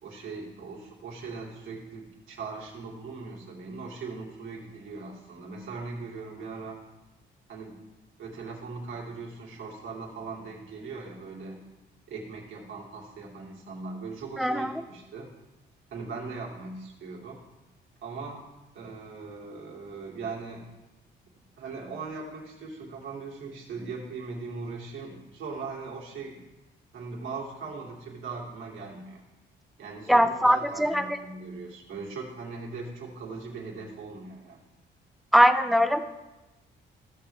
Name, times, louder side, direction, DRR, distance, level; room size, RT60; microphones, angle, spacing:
voice 1, 0.0-6.8 7.5-7.8 8.2-11.6 12.1-15.3 15.9-17.4 18.0-18.4 18.7-20.7 21.6-26.4 26.9-29.2 29.8-34.6, right 4 dB, 75° right, -3 dB, 2.9 m, -39 dB
voice 2, 14.4-14.7 30.1-31.2 35.3-36.0, equal, ahead, 9 dB, 0.7 m, -21 dB
15.5 x 6.7 x 3.4 m, 1.1 s
cardioid pair, 90°, 20 cm